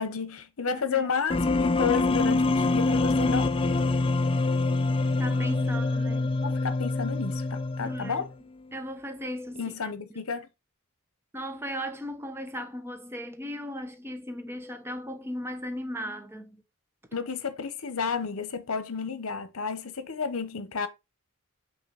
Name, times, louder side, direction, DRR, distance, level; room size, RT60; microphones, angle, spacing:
voice 1, 0.0-3.4 6.4-8.3 9.6-10.5 17.1-20.9, left 5 dB, 70° left, 0.9 m, -31 dB
voice 2, 0.7-1.1 5.2-6.4 7.8-8.2 8.7-10.2 11.3-16.6, equal, 10° right, 0.9 m, -37 dB
sound 1, 1.3-8.3, left 2 dB, 25° left, 0.4 m, -25 dB
5.7 x 3.1 x 5.6 m
head